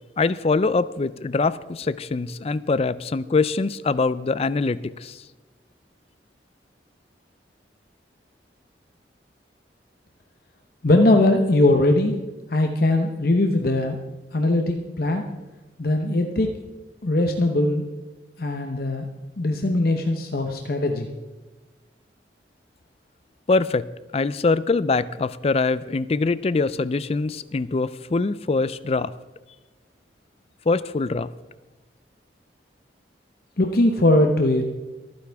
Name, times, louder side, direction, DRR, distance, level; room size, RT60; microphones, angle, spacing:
voice 1, 0.2-5.2 23.5-23.9 24.1-29.1 30.7-31.3, left 3 dB, 35° left, 17 dB, 0.4 m, -23 dB
voice 2, 10.8-12.2 12.5-14.0 14.3-15.2 15.8-16.5 17.0-17.8 18.4-19.1 19.4-21.1 33.6-34.6, left 1 dB, 55° left, 4 dB, 0.8 m, -20 dB
24.0 x 9.6 x 3.5 m, 1.1 s
head